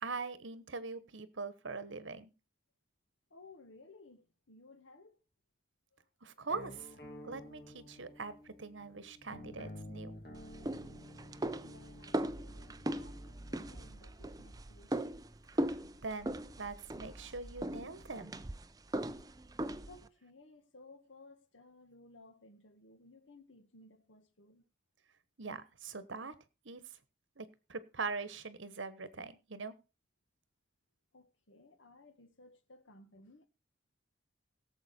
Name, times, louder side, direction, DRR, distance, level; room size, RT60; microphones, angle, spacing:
voice 1, 0.0-2.3 6.2-6.9 7.2-10.2 16.0-18.3 25.4-26.3 26.6-26.8 27.4-29.7, right 4 dB, 80° right, 1.2 m, -42 dB
voice 2, 3.3-5.2 5.9-6.1 11.6-15.0 15.2-15.3 19.9-24.7 31.1-33.5, left 2 dB, 80° left, 1.6 m, -59 dB
sound 1, 6.5-13.9, left 1 dB, 50° left, 2.8 m, -51 dB
sound 2, 10.3-20.1, right 1 dB, 20° right, 0.5 m, -39 dB
17.0 x 7.4 x 4.3 m
head